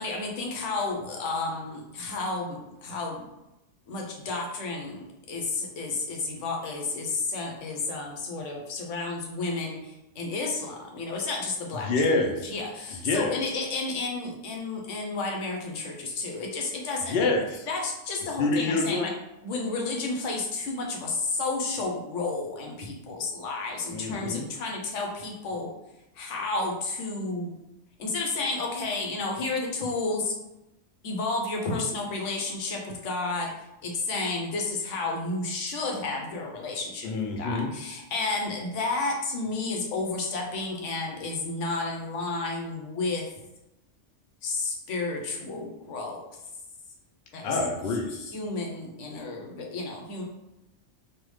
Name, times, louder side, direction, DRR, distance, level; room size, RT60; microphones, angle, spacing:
voice 1, 0.0-3.3 3.9-5.0 5.3-11.9 12.4-17.1 17.7-19.1 19.4-25.7 26.1-27.5 28.0-30.3 31.0-33.5 33.8-37.1 37.4-43.3 44.4-46.2 47.3-47.5 48.1-50.2, left 3 dB, 80° left, 1 dB, 1.0 m, -31 dB
voice 2, 11.8-12.5 13.0-13.3 17.1-17.7 18.4-19.0 23.9-24.5 37.0-37.7 47.4-48.1, left 3 dB, 60° left, 1 dB, 0.7 m, -26 dB
3.4 x 2.2 x 3.1 m, 0.91 s
omnidirectional pair, 1.2 m